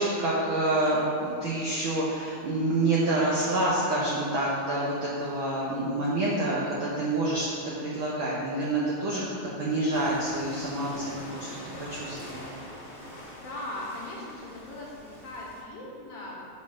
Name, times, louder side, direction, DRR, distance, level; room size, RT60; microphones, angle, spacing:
voice 1, 0.0-7.5 7.8-9.2 9.6-11.5 11.8-12.5, right 2 dB, 90° right, -5 dB, 1.1 m, -27 dB
sound 1, 9.9-15.6, equal, 85° left, 0.3 m, -43 dB
voice 2, 13.4-16.3, left 1 dB, 60° left, -5 dB, 1.8 m, -39 dB
6.1 x 4.2 x 6.2 m, 2.6 s
omnidirectional pair, 3.5 m